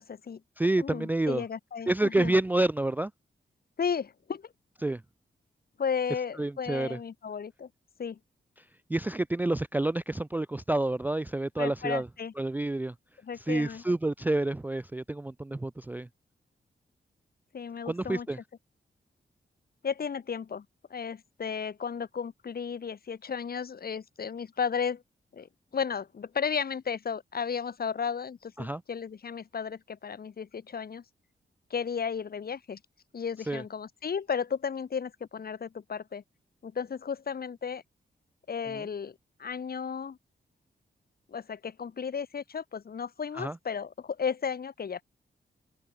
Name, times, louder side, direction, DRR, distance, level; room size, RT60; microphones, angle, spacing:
voice 1, 0.0-0.4 0.8-2.3 3.8-4.5 5.8-7.7 8.0-8.2 11.6-12.3 13.2-13.8 17.5-18.3 19.8-20.6 20.9-25.0 25.3-31.0 31.7-32.8 33.1-36.2 36.6-37.8 38.5-40.2 41.3-45.0, left 6 dB, 55° left, 3.3 m, -34 dB
voice 2, 0.6-1.4 1.9-3.1 4.8-5.0 6.4-7.0 8.9-12.1 12.4-12.9 13.5-16.1 17.9-18.4 28.6-28.8 33.5-33.6 38.7-38.9 43.3-43.6, right 2 dB, 10° right, 0.3 m, -28 dB
open air
wide cardioid pair, 165°, 18 cm